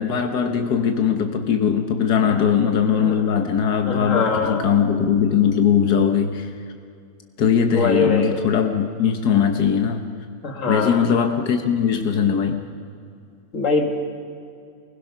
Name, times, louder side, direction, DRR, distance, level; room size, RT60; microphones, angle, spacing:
voice 1, 0.0-6.5 7.4-10.1 10.7-12.6, left 7 dB, 90° left, 5 dB, 1.7 m, -20 dB
voice 2, 3.0-3.3 3.9-4.7 7.7-8.4 10.4-11.1 13.5-13.9, left 4 dB, 55° left, 3 dB, 2.3 m, -23 dB
25.0 x 20.0 x 5.9 m, 2.4 s
omnidirectional pair, 1.7 m